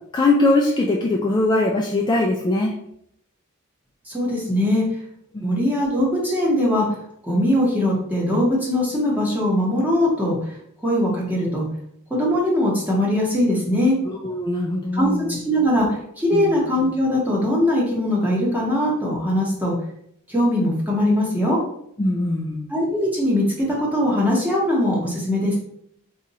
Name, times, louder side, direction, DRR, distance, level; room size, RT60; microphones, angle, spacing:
voice 1, 0.1-2.7 5.3-5.5 14.2-15.3 16.3-16.5 22.0-22.6, left 2 dB, 20° left, -2 dB, 0.3 m, -21 dB
voice 2, 4.1-4.8 5.4-6.8 7.2-10.4 10.8-11.6 12.1-14.0 14.9-19.8 20.3-21.6 22.7-25.6, left 1 dB, 10° right, -5 dB, 1.0 m, -21 dB
2.8 x 2.5 x 4.1 m, 0.71 s
head